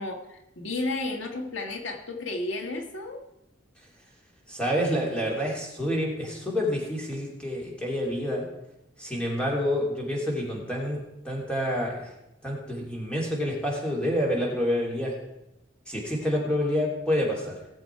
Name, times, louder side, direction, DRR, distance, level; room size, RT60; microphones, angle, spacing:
voice 1, 0.0-3.2, left 2 dB, 90° left, 3 dB, 1.6 m, -32 dB
voice 2, 4.5-8.4 9.0-11.0 11.2-12.1 12.4-15.2 15.9-17.6, equal, 5° left, -3 dB, 3.1 m, -28 dB
19.0 x 7.9 x 4.7 m, 0.91 s
head